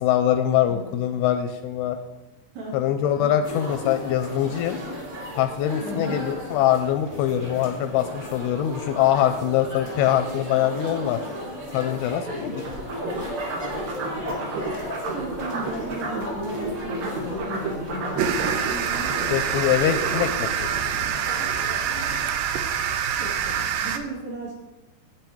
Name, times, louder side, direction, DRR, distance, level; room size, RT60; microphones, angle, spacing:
voice 1, 0.0-2.0 2.7-4.8 5.4-11.2 11.7-12.6 19.3-20.9, left 11 dB, 85° left, 8 dB, 2.4 m, -23 dB
voice 2, 0.7-1.0 2.5-2.8 3.1-3.9 5.8-6.2 12.3-12.7 15.1-19.1 22.8-24.5, right 1 dB, 45° right, -5 dB, 3.2 m, -35 dB
sound 1, 3.4-22.2, equal, 25° right, 2.1 m, -35 dB
sound 2, 12.7-16.3 16.6-20.4, right 4 dB, 70° right, 3.6 m, -32 dB
sound 3, 18.2-24.0, right 8 dB, 85° right, 2.0 m, -26 dB
9.5 x 8.8 x 4.6 m, 1.0 s
omnidirectional pair, 4.8 m